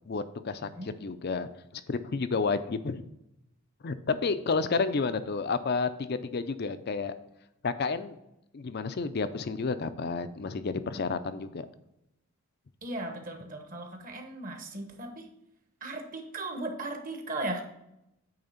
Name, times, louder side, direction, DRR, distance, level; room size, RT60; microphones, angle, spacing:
voice 1, 0.1-3.0 3.8-7.1 7.6-8.2 8.5-11.7, left 4 dB, 45° left, 12 dB, 0.5 m, -31 dB
voice 2, 0.6-0.9 12.8-15.3 15.8-17.6, right 2 dB, 40° right, 4 dB, 1.1 m, -37 dB
8.8 x 3.5 x 5.6 m, 0.85 s
head